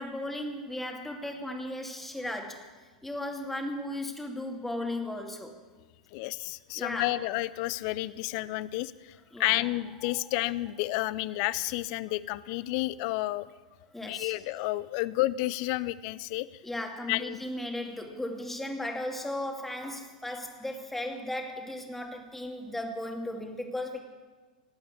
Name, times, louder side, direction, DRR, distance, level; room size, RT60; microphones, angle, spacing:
voice 1, 0.0-2.7 3.0-5.5 6.8-7.2 9.3-9.6 13.9-14.3 16.6-24.0, left 1 dB, 5° left, 3 dB, 2.3 m, -36 dB
voice 2, 6.1-9.1 9.4-13.5 14.0-16.5 17.1-17.4, left 18 dB, 50° left, 18 dB, 0.6 m, -31 dB
18.5 x 8.7 x 8.4 m, 1.3 s
figure-of-eight pair, 95°, 4 cm